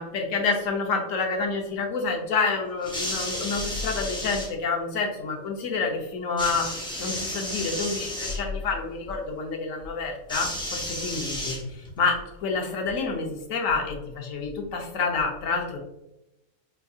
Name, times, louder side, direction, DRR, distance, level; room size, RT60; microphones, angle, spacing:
voice 1, 0.0-6.6 7.0-11.6 12.0-12.1 12.4-15.8, left 4 dB, 80° left, 2 dB, 1.1 m, -28 dB
sound 1, 2.8-4.5 6.4-8.4 10.3-12.0 13.0-13.1, left 1 dB, 5° left, 0.6 m, -32 dB
4.5 x 2.6 x 2.3 m, 0.87 s
omnidirectional pair, 1.4 m